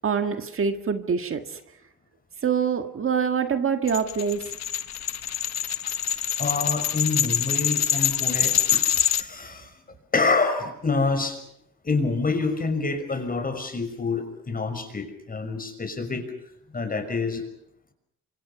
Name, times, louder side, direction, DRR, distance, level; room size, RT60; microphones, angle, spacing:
voice 1, 0.0-1.6 2.4-4.4, right 6 dB, 45° right, 7 dB, 1.8 m, -25 dB
sound 1, 3.9-9.2, left 9 dB, 60° left, 1.3 m, -25 dB
voice 2, 6.4-8.8 9.1-9.7 10.1-11.4 11.8-16.2 16.7-17.4, left 4 dB, 30° left, 7 dB, 5.9 m, -27 dB
28.0 x 25.0 x 5.9 m, 0.75 s
cardioid pair, 90°, 30 cm